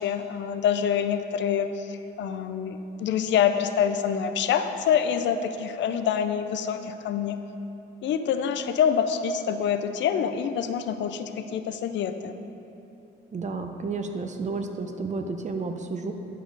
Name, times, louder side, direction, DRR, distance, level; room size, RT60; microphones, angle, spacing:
voice 1, 0.0-7.4 8.0-12.4, left 8 dB, 70° left, 8 dB, 0.4 m, -26 dB
voice 2, 13.3-16.1, right 4 dB, 35° right, 6 dB, 0.6 m, -31 dB
10.0 x 5.1 x 3.9 m, 3.0 s
cardioid pair, 90°, 20 cm